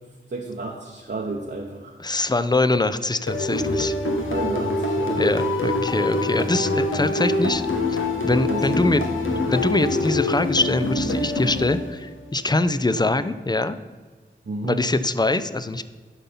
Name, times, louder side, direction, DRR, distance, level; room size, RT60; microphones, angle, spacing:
voice 1, 0.3-1.9 4.3-5.4 8.5-8.8 14.5-14.8, right 2 dB, 60° right, -1 dB, 1.0 m, -31 dB
voice 2, 2.0-3.9 5.2-7.6 7.9-8.0 8.2-9.0 9.4-13.8 14.6-15.8, left 2 dB, 20° left, 13 dB, 0.6 m, -23 dB
sound 1, 3.3-12.2, left 2 dB, 85° left, 1.3 m, -25 dB
11.0 x 5.5 x 5.6 m, 1.4 s
wide cardioid pair, 45°, 20 cm